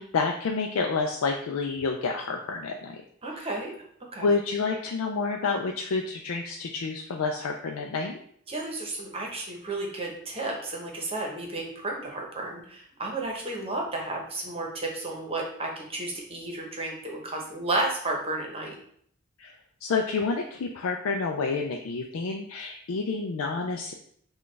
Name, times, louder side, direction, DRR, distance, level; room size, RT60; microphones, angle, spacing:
voice 1, 0.0-3.0 3.4-3.5 4.2-8.2 19.4-19.5 19.8-23.9, left 4 dB, 85° left, 2 dB, 0.4 m, -29 dB
voice 2, 3.2-3.7 4.0-4.3 8.5-18.8, right 2 dB, 30° right, 0 dB, 0.9 m, -32 dB
6.1 x 2.4 x 3.2 m, 0.64 s
head